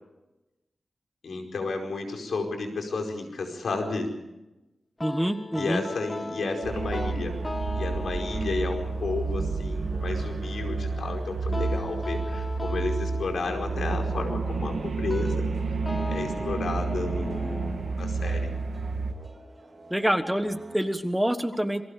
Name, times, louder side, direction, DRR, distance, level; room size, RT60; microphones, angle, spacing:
voice 1, 1.2-4.1 5.5-7.4 7.7-15.8 16.0-18.5, left 3 dB, 80° left, 3 dB, 4.9 m, -32 dB
sound 1, 5.0-19.9, left 2 dB, 25° left, 0.8 m, -39 dB
voice 2, 5.0-5.8 19.9-21.8, equal, 5° right, 9 dB, 1.3 m, -26 dB
sound 2, 6.6-19.1, right 4 dB, 70° right, 1.8 m, -30 dB
sound 3, 8.9-13.1 13.5-21.1, right 2 dB, 30° right, 3.5 m, -49 dB
27.5 x 23.0 x 5.1 m, 0.99 s
wide cardioid pair, 105°, 0 cm